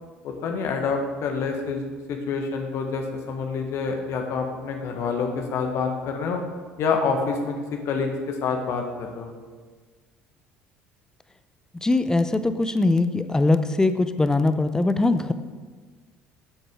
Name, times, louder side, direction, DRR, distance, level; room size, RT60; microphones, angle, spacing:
voice 1, 0.2-1.8 2.1-6.4 6.8-7.5 7.8-9.3, left 5 dB, 50° left, 3 dB, 1.3 m, -27 dB
voice 2, 11.8-15.3, left 2 dB, 10° left, 11 dB, 0.6 m, -21 dB
12.0 x 7.9 x 3.7 m, 1.4 s
figure-of-eight pair, 60°, 6 cm